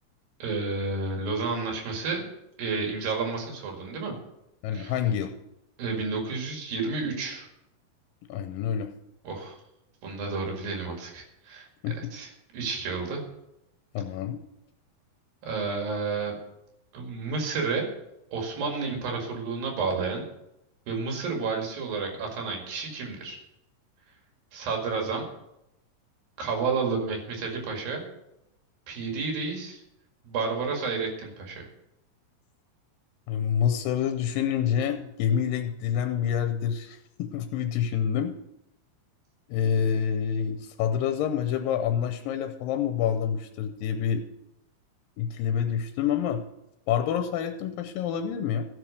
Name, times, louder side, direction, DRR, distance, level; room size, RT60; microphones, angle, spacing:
voice 1, 0.4-2.3 2.6-4.2 4.7-4.9 5.8-7.5 9.2-9.6 10.0-11.7 12.0-13.2 15.4-16.3 16.9-17.9 18.3-20.3 20.9-23.4 24.5-25.3 26.4-28.1 28.9-29.8 30.2-31.7, right 4 dB, 85° right, 1 dB, 3.9 m, -31 dB
voice 2, 4.6-5.3 8.3-8.9 11.8-11.9 13.9-14.4 33.3-38.3 39.5-44.2 45.2-46.4 46.9-48.7, left 8 dB, 85° left, 6 dB, 2.4 m, -27 dB
14.5 x 6.2 x 6.5 m, 0.86 s
omnidirectional pair, 4.0 m